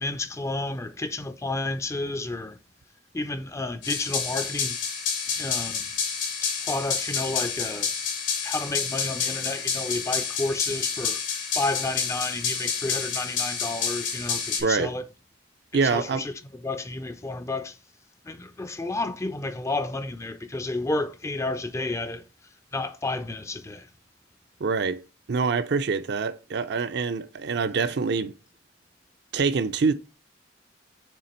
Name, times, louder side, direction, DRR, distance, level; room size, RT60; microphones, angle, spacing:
voice 1, 0.0-2.6 3.1-4.8 5.4-5.9 6.7-7.9 8.4-11.2 11.6-15.0 15.8-16.3 16.6-17.7 18.3-22.2 22.7-23.8, left 2 dB, 15° left, 0.4 m, -31 dB
sound 1, 3.8-14.6, left 6 dB, 85° left, 2.1 m, -29 dB
voice 2, 14.6-14.9 15.7-16.2 24.6-25.0 25.3-28.3 29.3-29.9, right 4 dB, 60° right, 0.5 m, -25 dB
6.8 x 3.2 x 4.4 m
head